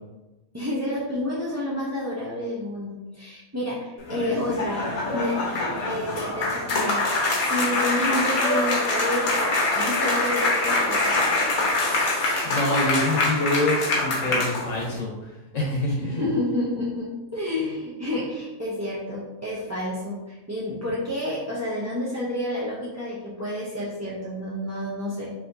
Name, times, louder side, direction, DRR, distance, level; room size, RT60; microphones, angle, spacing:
voice 1, 0.5-4.8 5.1-7.0 7.4-11.2 16.0-25.3, left 1 dB, 25° right, -7 dB, 0.3 m, -29 dB
sound 1, 4.0-15.0, left 2 dB, 90° left, 1.4 m, -24 dB
voice 2, 11.7-16.3, left 1 dB, 65° left, -3 dB, 1.2 m, -27 dB
4.9 x 2.8 x 2.6 m, 1.1 s
omnidirectional pair, 1.5 m